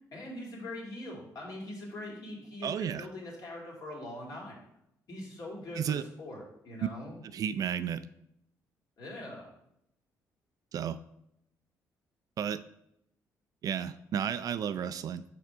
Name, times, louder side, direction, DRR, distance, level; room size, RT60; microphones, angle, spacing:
voice 1, 0.1-4.6 5.1-7.2 9.0-9.5, left 1 dB, 60° left, -2 dB, 2.2 m, -42 dB
voice 2, 2.6-3.1 5.8-6.0 7.3-8.1 10.7-11.0 12.4-12.6 13.6-15.2, right 8 dB, 60° right, 14 dB, 0.3 m, -32 dB
5.0 x 3.5 x 5.5 m, 0.79 s
supercardioid pair, 70°, 7 cm